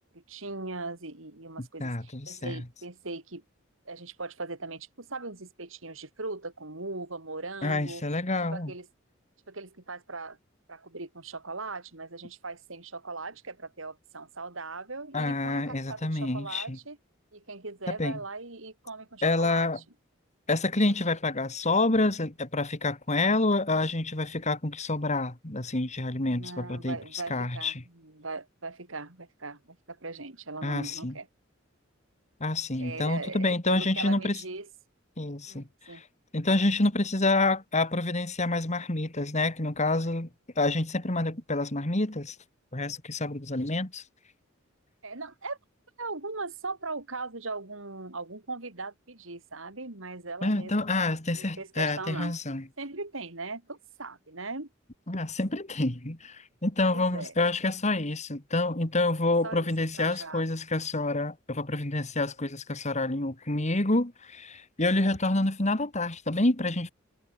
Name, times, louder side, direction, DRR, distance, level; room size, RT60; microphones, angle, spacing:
voice 1, 0.0-3.4 3.9-8.0 8.5-8.9 9.5-10.4 10.7-17.0 17.3-19.7 26.3-31.3 32.8-34.7 35.5-36.0 43.3-43.4 45.0-45.6 46.0-52.3 52.8-54.7 56.9-57.3 59.4-59.7 60.0-60.4 65.3-65.5, right 3 dB, 75° right, 3.6 m, -39 dB
voice 2, 1.6-2.6 7.6-8.7 15.1-16.8 17.9-18.2 19.2-19.8 20.5-27.0 27.3-27.7 30.6-31.1 32.4-34.4 35.2-36.0 36.3-40.3 40.6-42.4 42.7-44.0 50.4-52.6 55.1-66.9, left 2 dB, 35° left, 2.6 m, -28 dB
head